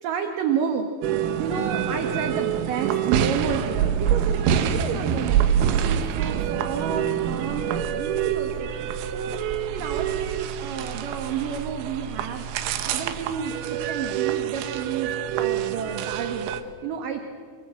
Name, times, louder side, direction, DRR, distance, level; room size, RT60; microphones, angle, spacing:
voice 1, 0.0-8.7 9.1-9.4 9.7-17.2, right 7 dB, 65° right, 5 dB, 2.3 m, -31 dB
sound 1, 1.0-16.6, right 9 dB, 90° right, 4.0 m, -26 dB
30.0 x 24.5 x 7.8 m, 2.1 s
omnidirectional pair, 5.8 m